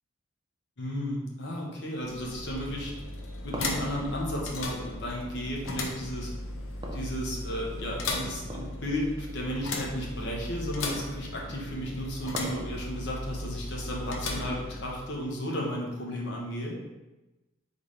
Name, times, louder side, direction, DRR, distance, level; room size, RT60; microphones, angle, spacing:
voice 1, 0.8-2.9 3.4-6.3 6.9-16.8, equal, 60° left, -2 dB, 0.9 m, -34 dB
sound 1, 2.0-15.3, left 2 dB, 85° left, 0.6 m, -37 dB
sound 2, 3.1-5.4 6.8-7.7 8.4-8.9 9.2-9.3 10.1-10.2 11.5-13.0, equal, 20° right, 0.4 m, -40 dB
4.0 x 3.5 x 3.2 m, 1.1 s
head